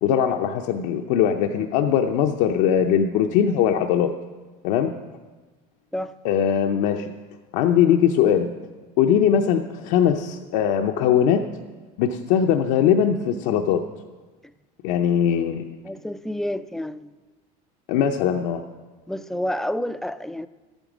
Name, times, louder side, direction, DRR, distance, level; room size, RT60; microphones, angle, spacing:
voice 1, 0.0-4.1 4.6-4.9 6.2-7.1 7.5-8.5 9.0-11.4 12.0-13.8 14.8-15.6 17.9-18.6, left 8 dB, 75° left, 4 dB, 0.6 m, -20 dB
voice 2, 15.8-17.1 19.1-20.5, left 1 dB, ahead, 12 dB, 0.3 m, -29 dB
12.5 x 9.0 x 6.1 m, 1.3 s
supercardioid pair, 115°, 19 cm